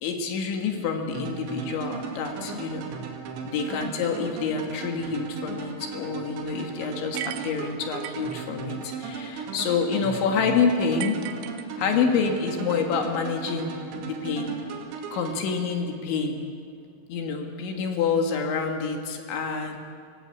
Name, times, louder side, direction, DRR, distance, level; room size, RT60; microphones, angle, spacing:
voice 1, 0.0-2.9 3.5-11.2 11.8-14.6 15.1-16.4 17.1-19.8, left 5 dB, 70° left, 3 dB, 3.9 m, -27 dB
sound 1, 1.1-16.2, right 5 dB, 65° right, 4.4 m, -36 dB
sound 2, 7.1-8.4 11.0-12.2, right 12 dB, 85° right, 3.4 m, -37 dB
24.5 x 16.5 x 8.5 m, 2.3 s
omnidirectional pair, 5.8 m